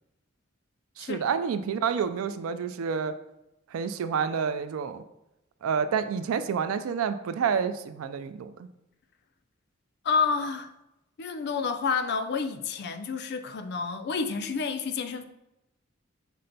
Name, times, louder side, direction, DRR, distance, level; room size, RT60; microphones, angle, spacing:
voice 1, 1.0-3.1 3.7-5.0 5.6-8.7, right 6 dB, 85° right, 0.3 m, -29 dB
voice 2, 10.0-10.7 11.2-15.2, left 5 dB, 50° left, 0.3 m, -29 dB
5.3 x 2.2 x 3.9 m
head